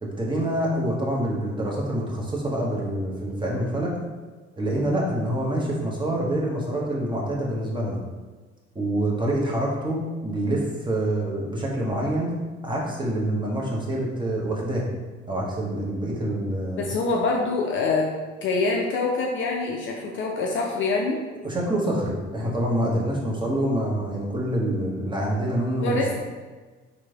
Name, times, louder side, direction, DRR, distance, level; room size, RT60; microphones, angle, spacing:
voice 1, 0.0-4.0 4.6-8.0 8.7-12.3 12.6-14.9 15.3-16.9 21.4-26.0, right 1 dB, 15° right, -3 dB, 0.8 m, -26 dB
voice 2, 16.8-18.1 18.4-21.2 25.8-26.1, left 3 dB, 35° left, -1 dB, 0.5 m, -25 dB
3.0 x 2.6 x 3.4 m, 1.4 s
figure-of-eight pair, 50°, 33 cm